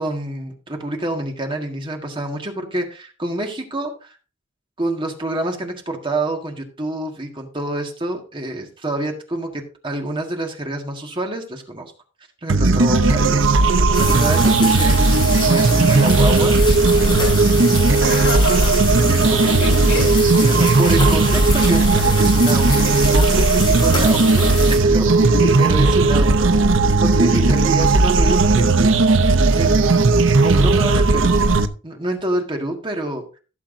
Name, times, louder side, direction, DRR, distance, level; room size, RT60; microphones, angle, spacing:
voice 1, 0.0-4.2 4.8-11.9 12.4-13.5 14.0-15.2 15.5-16.6 17.8-18.3 19.0-19.5 20.4-25.1 25.6-29.3 29.6-30.1 30.4-31.4 31.8-33.2, right 1 dB, 25° right, 1.8 m, -27 dB
sound 1, 12.5-31.6, right 3 dB, 85° right, 0.8 m, -15 dB
sound 2, 13.9-24.8, left 2 dB, 25° left, 6.0 m, -27 dB
voice 2, 18.0-18.7 19.3-20.1 25.2-25.5 27.3-27.4, left 3 dB, 70° left, 2.2 m, -27 dB
16.0 x 7.3 x 2.7 m
head